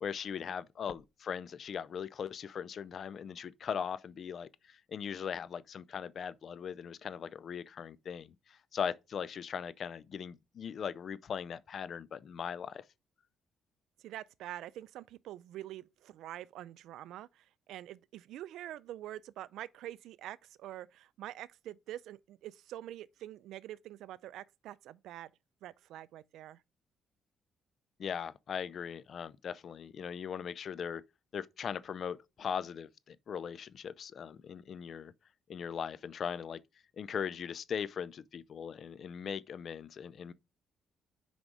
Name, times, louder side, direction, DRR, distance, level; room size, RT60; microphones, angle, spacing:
voice 1, 0.0-12.8 28.0-31.0 31.3-35.1 35.5-36.6 37.0-40.3, left 7 dB, 55° left, 0.5 m, -39 dB
voice 2, 14.0-25.3 25.6-26.6, right 13 dB, 85° right, 0.4 m, -46 dB
6.3 x 5.2 x 4.7 m
cardioid pair, 90°, 0 cm